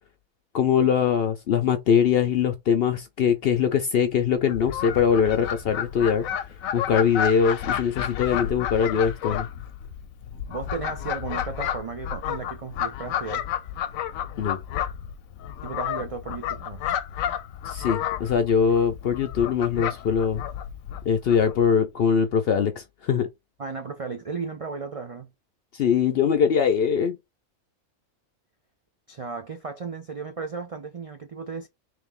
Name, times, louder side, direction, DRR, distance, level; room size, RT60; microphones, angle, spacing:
voice 1, 0.5-6.2 6.7-9.5 14.4-14.6 17.7-20.4 21.1-23.3 25.7-27.2, left 7 dB, 65° left, 0.6 m, -22 dB
Fowl, 4.4-21.7, left 9 dB, 80° left, 1.0 m, -31 dB
voice 2, 10.5-13.5 15.6-16.9 23.6-25.3 29.1-31.7, right 4 dB, 65° right, 0.3 m, -34 dB
3.5 x 3.1 x 3.5 m
omnidirectional pair, 1.4 m